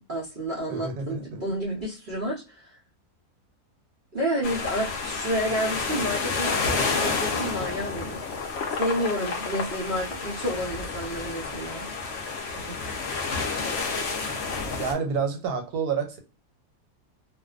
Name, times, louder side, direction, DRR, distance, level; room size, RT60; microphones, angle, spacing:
voice 1, 0.0-2.8 4.1-8.2 8.8-12.2 12.7-13.0, equal, 60° right, -3 dB, 0.5 m, -30 dB
voice 2, 0.7-1.4 12.5-12.8 14.8-16.2, right 5 dB, 80° right, 5 dB, 1.2 m, -29 dB
sound 1, 4.4-14.9, left 4 dB, 60° left, 0.7 m, -30 dB
2.5 x 2.2 x 2.3 m, 0.31 s
omnidirectional pair, 1.7 m